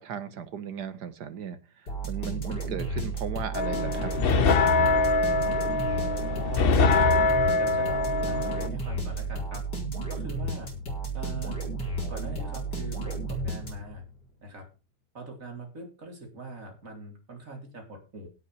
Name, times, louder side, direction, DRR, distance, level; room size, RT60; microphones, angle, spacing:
voice 1, 0.0-1.6 2.0-4.1 4.7-5.2, right 7 dB, 75° right, 12 dB, 1.9 m, -36 dB
sound 1, 1.9-14.1, right 2 dB, 90° left, 5.0 m, -33 dB
sound 2, 3.5-8.7, left 3 dB, 45° left, 0.8 m, -24 dB
voice 2, 6.1-7.2 7.6-9.6 10.1-10.7 11.1-11.6 12.1-14.0 14.4-14.7 15.1-18.3, right 2 dB, 50° right, 2 dB, 4.1 m, -42 dB
16.5 x 5.8 x 5.7 m, 0.31 s
omnidirectional pair, 1.8 m